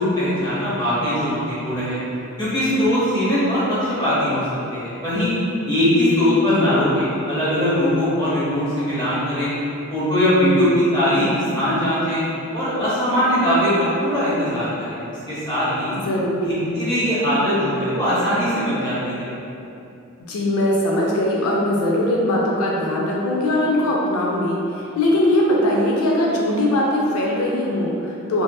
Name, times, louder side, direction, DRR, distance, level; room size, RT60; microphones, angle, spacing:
voice 1, 0.0-2.0 2.4-4.4 4.7-5.3 5.7-9.5 9.9-12.2 12.5-15.0 15.3-15.9 16.4-19.3, equal, 20° left, -11 dB, 0.8 m, -20 dB
voice 2, 6.4-6.9 15.9-16.5 20.3-28.4, left 1 dB, 85° left, -3 dB, 0.4 m, -21 dB
2.6 x 2.5 x 2.2 m, 2.7 s
head